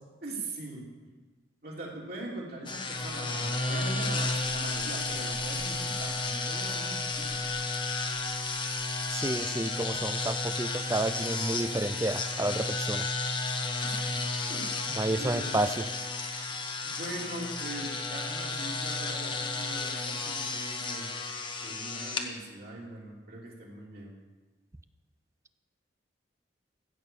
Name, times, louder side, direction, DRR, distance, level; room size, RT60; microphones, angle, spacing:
voice 1, 0.2-0.9 1.6-7.4 13.8-14.2 14.5-14.8 15.2-15.6 16.5-16.6 16.8-21.2 21.6-24.2, right 1 dB, 55° right, -3 dB, 3.0 m, -41 dB
sound 1, 2.7-22.3, left 3 dB, 25° left, 1.0 m, -32 dB
voice 2, 9.1-13.1 15.0-15.7, right 2 dB, 15° right, 12 dB, 0.4 m, -30 dB
15.5 x 6.3 x 7.5 m, 1.3 s
head